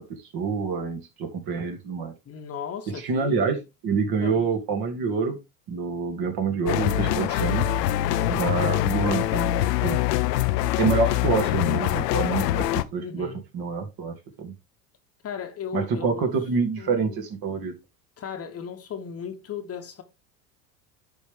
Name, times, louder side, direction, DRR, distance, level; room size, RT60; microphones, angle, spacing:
voice 1, 0.1-2.1 3.0-5.4 5.7-7.7 8.3-9.5 9.8-10.0 10.8-14.5 15.7-17.7, right 5 dB, 45° right, 2.5 m, -27 dB
voice 2, 2.3-3.5 4.2-4.5 8.0-8.4 13.0-13.4 15.2-16.3 16.8-17.2 18.2-20.0, left 7 dB, 30° left, 1.1 m, -36 dB
sound 1, 6.7-12.8, left 13 dB, 85° left, 0.7 m, -24 dB
11.0 x 4.2 x 3.5 m
hypercardioid pair, 95°, 48 cm